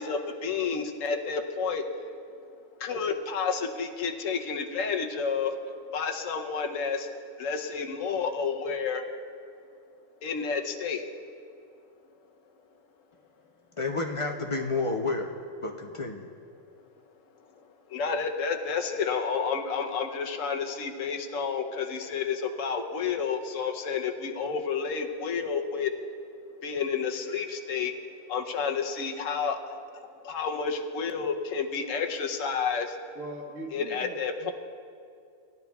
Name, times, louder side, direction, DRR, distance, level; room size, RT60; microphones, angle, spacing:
voice 1, 0.0-2.0 2.8-5.5 5.9-7.1 7.4-9.0 10.2-11.0 17.9-25.9 26.6-27.9 28.3-33.0 33.7-34.5, left 5 dB, 70° left, 4 dB, 1.1 m, -30 dB
voice 2, 13.8-15.3 15.6-16.3, left 3 dB, 45° left, 2 dB, 0.4 m, -30 dB
voice 3, 33.1-34.5, right 1 dB, 70° right, 0 dB, 1.7 m, -40 dB
18.5 x 12.0 x 2.3 m, 2.4 s
omnidirectional pair, 1.4 m